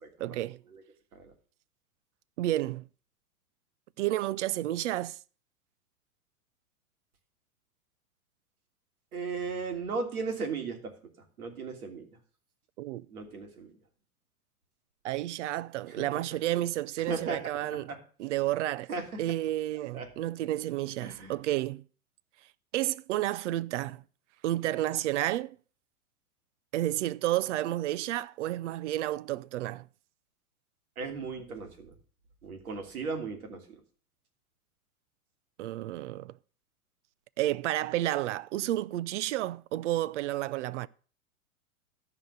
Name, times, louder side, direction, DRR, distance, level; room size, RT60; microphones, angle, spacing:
voice 1, 0.2-0.6 2.4-2.9 4.0-5.2 12.8-13.0 15.0-17.9 18.2-18.9 19.2-21.9 22.7-24.0 24.4-25.6 26.7-29.9 35.6-36.3 37.4-40.9, right 14 dB, 55° right, 0.6 m, -31 dB
voice 2, 9.1-10.9 11.4-12.1 13.1-13.7 15.9-16.0 17.0-18.0 18.9-19.2 19.9-20.1 21.0-21.4 31.0-31.9 32.4-33.8, right 4 dB, 75° right, 3.0 m, -36 dB
13.5 x 5.0 x 6.6 m
hypercardioid pair, 105°, 44 cm